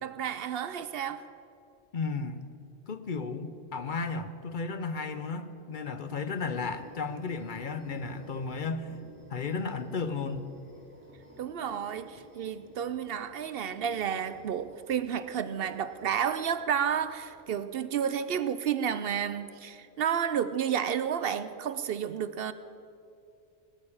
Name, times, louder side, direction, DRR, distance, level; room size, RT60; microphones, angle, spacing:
voice 1, 0.0-1.2 11.4-22.5, right 8 dB, 65° right, 13 dB, 0.8 m, -31 dB
voice 2, 1.9-2.5 2.9-8.9 9.3-10.5, left 4 dB, 50° left, 10 dB, 0.8 m, -34 dB
sound 1, 6.3-17.6, equal, 10° right, 2.4 m, -53 dB
19.0 x 6.7 x 8.6 m, 2.5 s
omnidirectional pair, 1.1 m